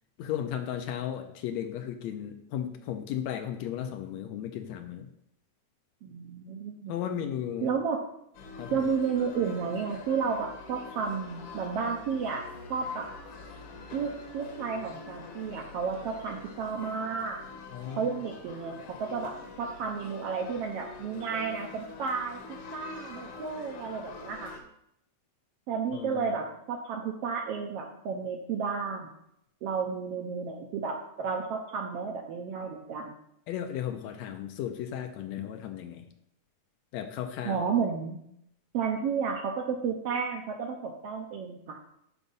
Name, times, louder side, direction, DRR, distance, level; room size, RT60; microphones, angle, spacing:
voice 1, 0.2-5.1 6.9-7.8 8.6-8.9 17.7-18.2 25.9-26.4 33.5-36.1 36.9-37.7, left 10 dB, 80° left, 6 dB, 1.8 m, -35 dB
voice 2, 6.0-6.9 7.6-8.0 8.7-12.4 12.7-13.1 13.9-17.4 18.0-22.4 22.7-24.5 25.7-29.1 29.6-33.1 37.4-38.2 38.7-41.8, right 5 dB, 75° right, 2 dB, 1.5 m, -32 dB
sound 1, 8.3-24.6, left 3 dB, 60° left, 1.7 m, -45 dB
11.0 x 4.7 x 4.0 m, 0.76 s
omnidirectional pair, 3.4 m